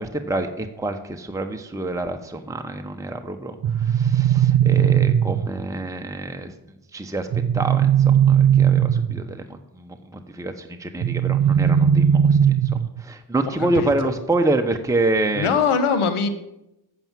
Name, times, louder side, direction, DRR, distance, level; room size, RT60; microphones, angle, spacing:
voice 1, 0.0-6.5 6.9-7.3 7.5-15.5, right 2 dB, 5° right, 5 dB, 1.0 m, -27 dB
sound 1, 3.6-5.6 7.3-9.4 11.0-13.0, right 9 dB, 50° right, 0.5 m, -18 dB
voice 2, 13.6-14.1 15.3-16.3, left 5 dB, 85° left, 10 dB, 1.1 m, -22 dB
8.8 x 5.8 x 7.6 m, 0.87 s
supercardioid pair, 40°, 49 cm